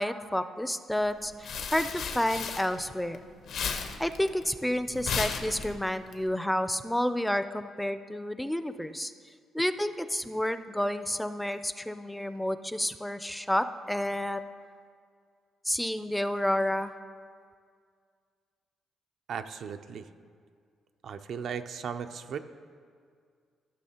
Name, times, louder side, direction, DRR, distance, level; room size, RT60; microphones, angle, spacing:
voice 1, 0.0-3.2 4.0-9.1 9.5-14.4 15.7-16.9, left 1 dB, 5° left, 11 dB, 0.3 m, -30 dB
sound 1, 1.1-3.1 3.4-6.1, left 5 dB, 70° left, 0.7 m, -34 dB
voice 2, 19.3-20.1 21.0-22.4, right 7 dB, 65° right, 8 dB, 0.4 m, -36 dB
14.0 x 6.1 x 2.8 m, 2.1 s
cardioid pair, 90°, 0 cm